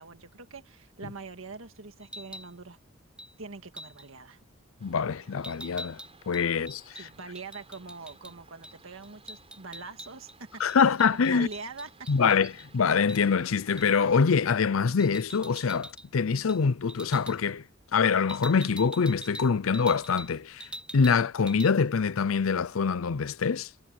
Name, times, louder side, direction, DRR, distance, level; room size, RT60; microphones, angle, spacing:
voice 1, 0.0-2.8 3.4-4.4 6.9-12.4, right 4 dB, 70° right, 1.8 m, -44 dB
sound 1, 2.0-2.5 3.2-3.3 3.8-4.1 5.4-8.3 8.6-8.8 9.0-10.4 10.7-12.7 13.1-13.2 13.8-14.0 15.0-16.1 16.4-16.6 16.9-17.4 18.3-20.3 20.6-21.2 21.5-21.7, right 1 dB, 5° right, 4.8 m, -44 dB
voice 2, 4.8-6.0 6.3-7.0 10.6-11.5 12.1-17.6 17.9-20.7 20.9-23.7, left 5 dB, 75° left, 0.6 m, -25 dB
sound 2, 4.8-14.3, right 4 dB, 30° right, 4.6 m, -58 dB
head